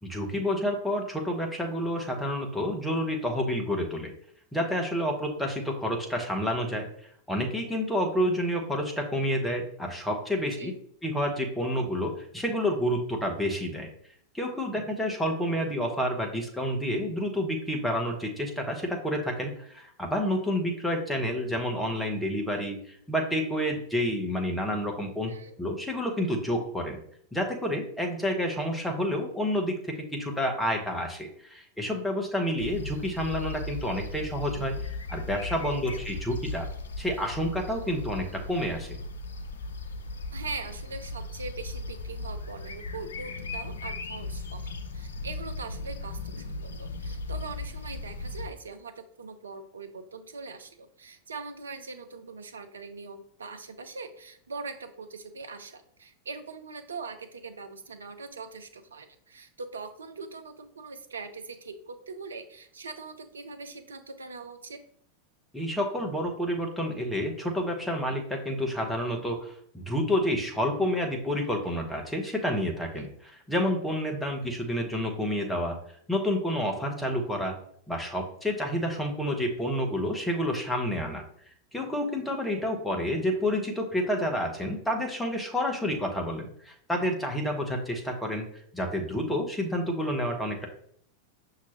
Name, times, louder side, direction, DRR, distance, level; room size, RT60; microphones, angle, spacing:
voice 1, 0.0-4.1 4.5-6.8 7.3-10.7 11.0-13.9 14.3-25.3 25.6-27.0 27.3-36.7 37.0-39.0 65.5-73.1 73.5-75.8 76.1-77.5 77.9-81.2 81.7-88.5 88.7-90.7, equal, 5° left, 1 dB, 0.9 m, -29 dB
sound 1, 32.6-48.5, left 2 dB, 70° left, 0.5 m, -37 dB
voice 2, 40.3-64.8 72.9-73.1, right 4 dB, 70° right, 8 dB, 0.5 m, -41 dB
5.8 x 2.8 x 3.1 m, 0.65 s
figure-of-eight pair, 90°, 0 cm